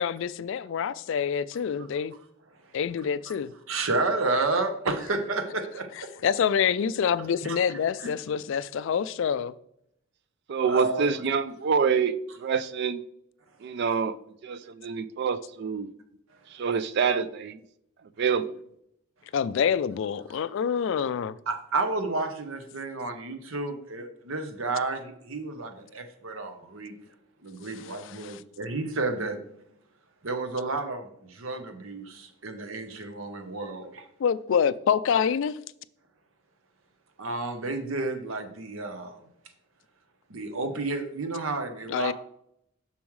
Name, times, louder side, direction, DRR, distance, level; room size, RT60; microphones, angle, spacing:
voice 1, 0.0-2.1 2.7-3.5 6.2-9.5 19.3-21.4 28.0-28.4 34.2-35.6 41.9-42.1, left 7 dB, 60° left, 0.3 m, -26 dB
voice 2, 3.7-6.1 7.4-7.6 8.0-8.1 10.7-11.3 21.5-27.0 27.4-29.4 30.2-34.1 37.2-39.2 40.3-42.1, right 3 dB, 65° right, 0.8 m, -31 dB
voice 3, 10.5-13.0 13.6-14.2 14.4-15.9 16.5-17.6 18.2-18.5, right 6 dB, 50° right, 0.4 m, -26 dB
7.0 x 6.2 x 3.2 m
head